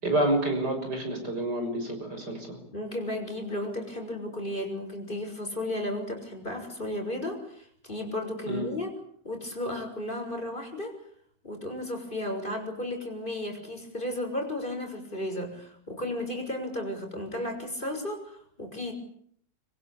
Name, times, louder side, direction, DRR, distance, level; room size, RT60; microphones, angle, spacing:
voice 1, 0.0-2.6 8.5-8.7, right 1 dB, 70° right, 5 dB, 7.1 m, -28 dB
voice 2, 2.7-8.9 9.2-10.9 11.4-18.9, left 1 dB, 30° left, 4 dB, 6.6 m, -34 dB
26.0 x 23.5 x 8.7 m, 0.63 s
omnidirectional pair, 1.8 m